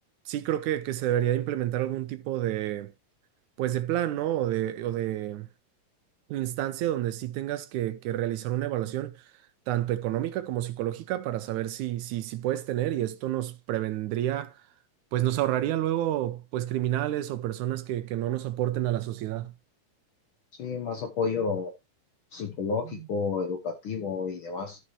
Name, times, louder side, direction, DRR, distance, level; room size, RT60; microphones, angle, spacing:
voice 1, 0.3-2.9 3.6-5.5 6.3-9.2 9.7-14.5 15.1-19.5 22.9-23.1, right 13 dB, 75° right, 2.1 m, -29 dB
voice 2, 20.6-21.7 22.3-24.8, left 5 dB, 75° left, 1.1 m, -30 dB
13.0 x 6.4 x 3.1 m
omnidirectional pair, 3.7 m